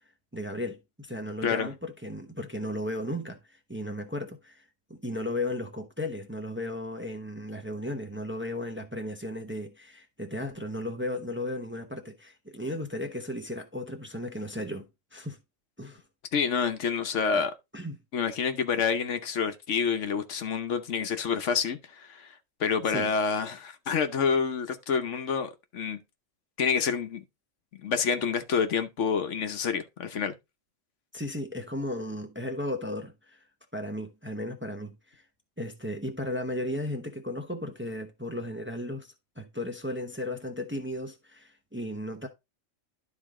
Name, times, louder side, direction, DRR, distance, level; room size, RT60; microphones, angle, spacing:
voice 1, 0.3-15.4 15.8-16.0 17.3-17.4 17.7-18.0 22.8-23.1 31.1-33.4 33.7-35.2 35.6-42.3, left 1 dB, 10° right, 0.9 m, -35 dB
voice 2, 16.3-17.5 18.1-22.3 22.6-26.0 26.6-27.2 27.8-30.3, left 6 dB, 65° left, 1.2 m, -28 dB
12.0 x 3.9 x 3.7 m
omnidirectional pair, 1.3 m